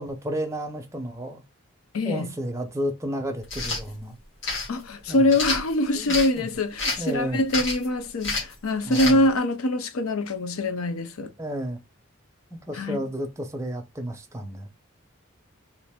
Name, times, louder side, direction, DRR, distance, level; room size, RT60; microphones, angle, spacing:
voice 1, 0.0-1.4 2.0-4.2 5.1-5.3 5.9-6.5 7.0-7.4 8.9-9.2 11.4-11.8 12.5-14.7, equal, 15° right, 0.6 m, -32 dB
voice 2, 1.9-2.3 4.7-11.3 12.7-13.0, left 1 dB, 85° left, 0.5 m, -24 dB
sound 1, 3.4-3.8 4.4-4.7 5.3-6.3 6.8-7.1 7.5-7.9 8.2-8.5 8.9-9.2, left 3 dB, 60° left, 1.5 m, -28 dB
3.1 x 2.5 x 3.5 m
head